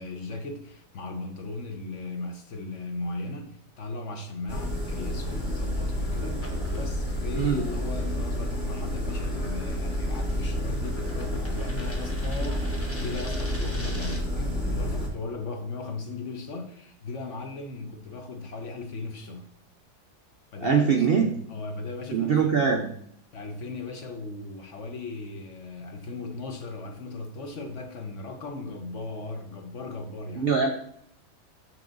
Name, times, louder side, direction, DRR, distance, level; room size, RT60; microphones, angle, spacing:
voice 1, 0.0-19.5 20.5-22.9 23.3-30.5, left 3 dB, 55° left, 1.0 m, -37 dB
sound 1, 4.5-15.1, equal, 25° left, 2.1 m, -30 dB
sound 2, 6.3-14.4, equal, 10° left, 0.9 m, -46 dB
sound 3, 6.7-12.9, right 2 dB, 85° left, 2.5 m, -45 dB
voice 2, 20.6-21.3 22.1-22.9 30.4-30.7, right 6 dB, 75° right, 0.5 m, -22 dB
6.1 x 6.1 x 3.9 m
omnidirectional pair, 1.8 m